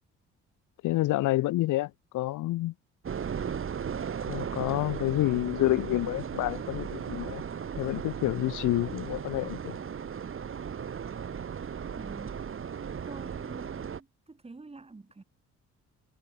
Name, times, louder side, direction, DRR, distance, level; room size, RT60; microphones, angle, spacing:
voice 1, 0.8-2.7 4.3-7.4 7.8-9.8, left 17 dB, 80° left, 0.7 m, -28 dB
sound 1, 3.0-14.0, right 7 dB, 45° right, 2.3 m, -36 dB
voice 2, 11.9-12.6 13.0-15.2, right 3 dB, 20° right, 2.4 m, -47 dB
cardioid pair, 90°, 30 cm